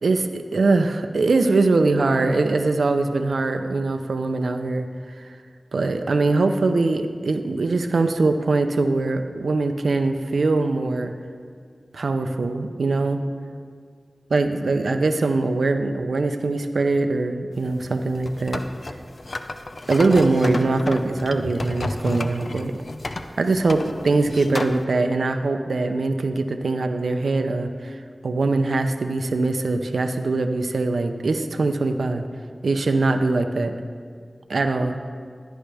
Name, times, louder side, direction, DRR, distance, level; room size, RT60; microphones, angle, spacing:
voice 1, 0.0-4.9 5.7-11.1 11.9-13.2 14.3-18.6 19.9-22.8 23.4-28.0 28.2-32.2 32.6-33.8 34.5-35.0, right 3 dB, 90° right, 7 dB, 0.6 m, -22 dB
sound 1, 17.5-24.8, left 2 dB, 65° left, 0.6 m, -32 dB
16.5 x 10.0 x 3.4 m, 2.1 s
cardioid pair, 40°, 0 cm